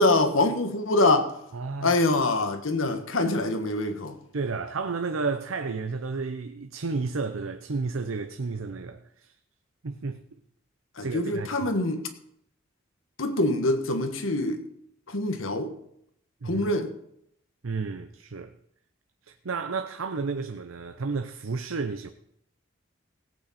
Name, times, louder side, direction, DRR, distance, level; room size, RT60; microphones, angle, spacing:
voice 1, 0.0-1.3 1.8-4.2 11.0-12.1 13.2-14.6 15.1-15.7 16.4-16.9, left 2 dB, 80° left, 1.4 m, -24 dB
voice 2, 1.5-2.0 4.3-9.3 9.8-10.2 11.0-11.7 16.4-16.7 17.6-18.5 19.2-22.1, right 4 dB, 85° right, 0.7 m, -32 dB
17.5 x 8.7 x 4.2 m
head